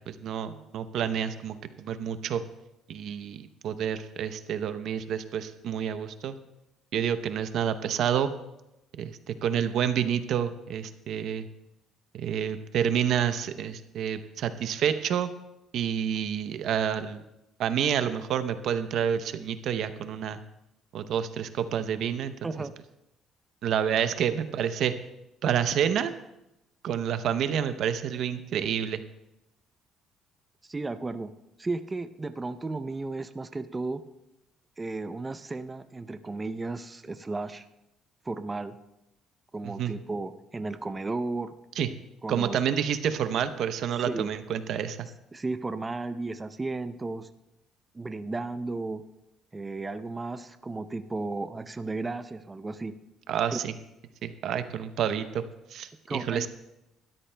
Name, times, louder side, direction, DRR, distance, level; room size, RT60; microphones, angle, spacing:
voice 1, 0.1-2.4 2.9-6.4 6.9-8.3 9.0-11.5 12.1-15.3 15.7-17.2 17.6-20.4 20.9-22.3 23.6-24.9 25.4-26.1 26.8-29.0 39.6-39.9 41.8-41.9 42.3-45.1 53.3-53.7 54.2-55.4 55.7-56.5, right 9 dB, 70° right, 11 dB, 0.7 m, -28 dB
voice 2, 30.6-31.3 31.6-34.0 34.8-37.6 38.2-38.8 39.5-41.5 42.2-42.9 44.1-44.3 45.3-47.3 47.9-49.0 49.5-52.9 53.5-53.6 56.1-56.5, right 3 dB, 20° right, 10 dB, 0.6 m, -34 dB
20.5 x 13.0 x 2.2 m, 0.91 s
cardioid pair, 90°, 0 cm